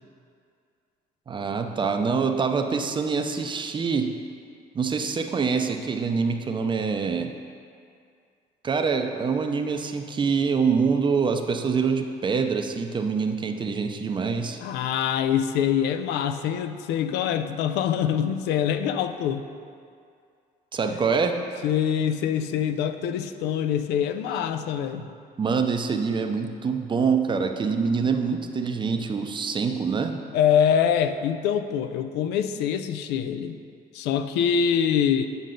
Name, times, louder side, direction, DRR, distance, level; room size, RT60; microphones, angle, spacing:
voice 1, 1.3-4.1 4.7-7.3 8.6-14.6 20.7-21.4 25.0-25.1 25.4-30.2, right 5 dB, 30° right, 5 dB, 0.5 m, -25 dB
voice 2, 14.6-19.5 20.9-21.0 21.6-25.1 29.0-29.1 30.3-33.6 33.9-35.3, left 8 dB, 85° left, 9 dB, 0.4 m, -24 dB
9.3 x 5.3 x 3.8 m, 2.3 s
cardioid pair, 110°, 17 cm